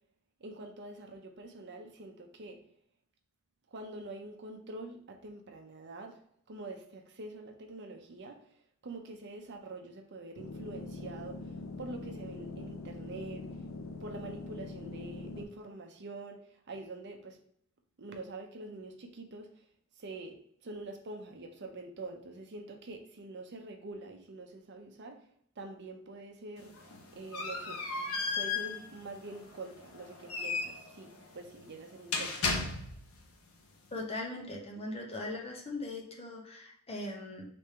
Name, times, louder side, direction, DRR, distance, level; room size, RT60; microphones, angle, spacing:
voice 1, 0.4-2.6 3.7-6.2 6.5-13.6 14.0-17.4 18.0-19.7 19.9-25.3 25.6-27.8 28.3-32.5, right 2 dB, 55° right, 4 dB, 0.7 m, -45 dB
sound 1, 10.4-15.4, left 3 dB, 65° left, 0.5 m, -43 dB
sound 2, 26.6-33.2, left 4 dB, 85° left, 0.9 m, -36 dB
voice 2, 33.9-37.5, left 2 dB, 30° left, 1 dB, 0.8 m, -39 dB
3.4 x 3.3 x 4.3 m, 0.68 s
head